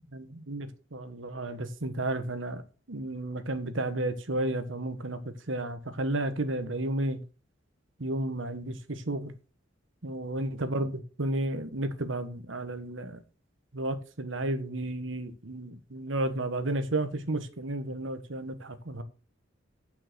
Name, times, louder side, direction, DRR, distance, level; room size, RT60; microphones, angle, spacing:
voice 1, 0.1-2.6 2.9-5.2 5.5-7.2 8.0-9.3 10.0-13.2 13.7-19.0, right 1 dB, 70° right, 11 dB, 1.4 m, -32 dB
9.1 x 5.9 x 6.2 m, 0.35 s
head